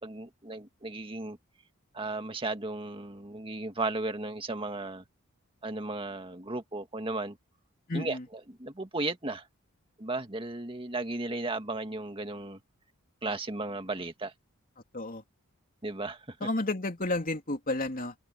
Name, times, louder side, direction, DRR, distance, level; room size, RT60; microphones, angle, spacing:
voice 1, 0.0-1.4 1.9-5.0 5.6-7.4 7.9-8.2 8.5-9.5 10.0-12.6 13.2-14.3 15.8-16.5, right 2 dB, 25° right, 1.8 m, -35 dB
voice 2, 7.9-8.3 14.9-15.2 16.4-18.1, left 2 dB, 40° left, 3.0 m, -31 dB
open air
head